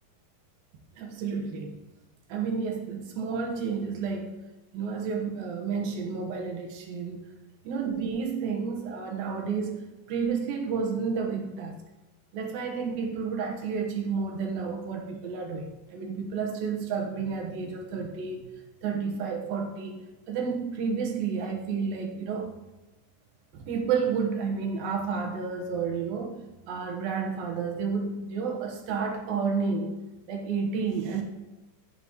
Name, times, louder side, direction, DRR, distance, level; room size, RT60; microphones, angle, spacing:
voice 1, 1.0-1.8 2.3-4.4 4.7-7.3 7.6-9.8 10.1-11.8 12.3-18.5 18.8-22.5 23.5-26.4 26.7-30.0 30.3-31.2, right 5 dB, 65° right, 1 dB, 2.5 m, -31 dB
16.0 x 7.2 x 3.1 m, 1.0 s
omnidirectional pair, 5.3 m